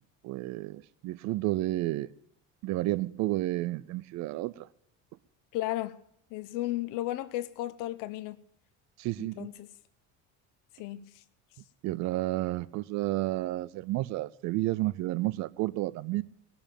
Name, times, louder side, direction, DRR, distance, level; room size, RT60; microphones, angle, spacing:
voice 1, 0.2-2.1 2.6-4.7 9.0-9.5 11.8-16.2, right 17 dB, 60° right, 0.5 m, -31 dB
voice 2, 5.5-6.0 6.3-8.4 9.2-9.7 10.7-11.2, left 15 dB, 75° left, 0.8 m, -34 dB
19.5 x 7.0 x 8.8 m
cardioid pair, 145°, 32 cm